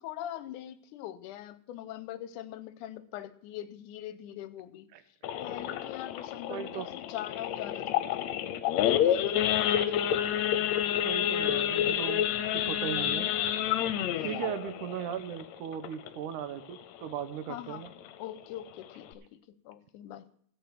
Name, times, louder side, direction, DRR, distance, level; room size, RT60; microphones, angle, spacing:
voice 1, 0.0-4.9 5.4-8.4 8.8-10.3 14.1-14.5 17.5-17.8 18.2-19.4 19.7-20.2, left 12 dB, 90° left, 14 dB, 2.2 m, -41 dB
Idling / Accelerating revving vroom / Sawing, 5.2-16.3 16.7-16.9 17.2-17.3 17.7-18.0 18.5-18.6 18.8-19.1, left 10 dB, 75° left, 1.8 m, -29 dB
voice 2, 6.5-6.9 11.0-12.3 12.5-13.3 14.2-17.9, right 10 dB, 80° right, 11 dB, 2.3 m, -37 dB
15.0 x 5.2 x 7.5 m, 0.64 s
omnidirectional pair, 3.6 m